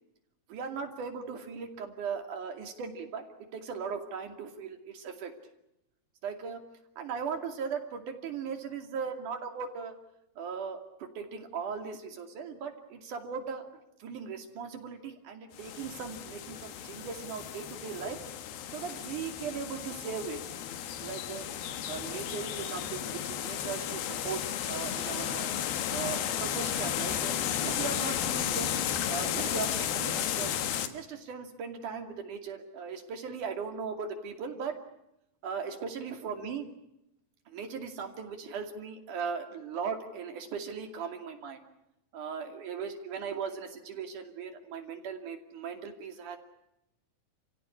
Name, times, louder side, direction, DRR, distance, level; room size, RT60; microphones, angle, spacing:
voice 1, 0.5-3.2 3.5-5.3 6.2-6.6 7.0-9.9 10.4-13.6 14.0-18.2 18.7-20.4 21.0-21.5 21.9-24.4 24.7-25.6 25.9-27.3 27.6-28.8 29.1-30.5 30.9-34.8 35.4-36.6 37.5-41.6 42.1-46.4, right 6 dB, 60° right, 5 dB, 4.0 m, -38 dB
sound 1, 15.5-30.9, left 10 dB, 85° left, 3.3 m, -33 dB
29.5 x 16.0 x 9.8 m, 0.87 s
omnidirectional pair, 4.2 m